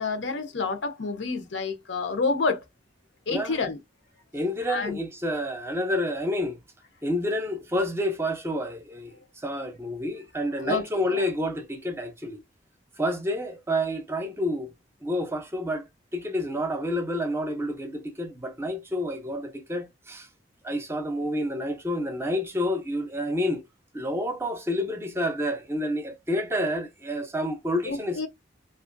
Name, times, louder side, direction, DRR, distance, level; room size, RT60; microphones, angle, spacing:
voice 1, 0.0-2.6 3.3-3.8 4.7-5.0 10.6-11.2 27.9-28.3, left 4 dB, 90° left, 0.7 m, -29 dB
voice 2, 4.3-6.6 7.0-12.4 13.0-14.7 15.0-15.8 16.1-20.3 20.6-23.6 23.9-28.3, equal, 15° right, 0.5 m, -29 dB
2.8 x 2.4 x 2.5 m
head